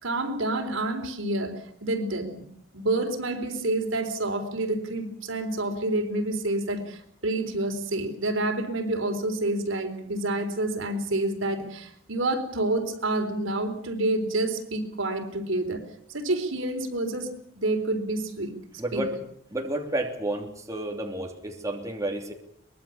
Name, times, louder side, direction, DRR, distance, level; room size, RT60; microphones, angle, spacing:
voice 1, 0.0-2.5 2.7-15.8 16.1-18.5 18.9-19.0, right 2 dB, 80° right, 5 dB, 3.9 m, -28 dB
voice 2, 18.8-19.1 19.5-22.3, right 1 dB, 15° right, 1 dB, 3.1 m, -31 dB
23.5 x 20.5 x 7.2 m, 0.68 s
head